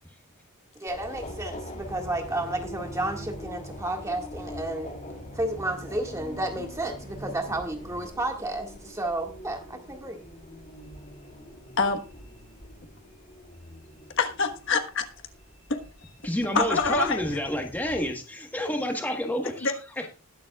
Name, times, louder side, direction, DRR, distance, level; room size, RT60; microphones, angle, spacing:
voice 1, 0.8-4.9 5.3-10.2, right 1 dB, 15° right, 3 dB, 1.8 m, -32 dB
Subway metro underground, 0.9-18.1, left 1 dB, 35° left, 2.9 m, -44 dB
sound 1, 1.8-8.1, right 1 dB, 35° right, 3.5 m, -44 dB
voice 2, 14.2-15.1 15.7-15.8 16.5-17.2 19.6-20.1, left 4 dB, 55° left, 6 dB, 1.3 m, -25 dB
voice 3, 16.2-19.7, equal, 10° left, 3 dB, 1.3 m, -29 dB
20.0 x 7.4 x 2.3 m, 0.32 s
head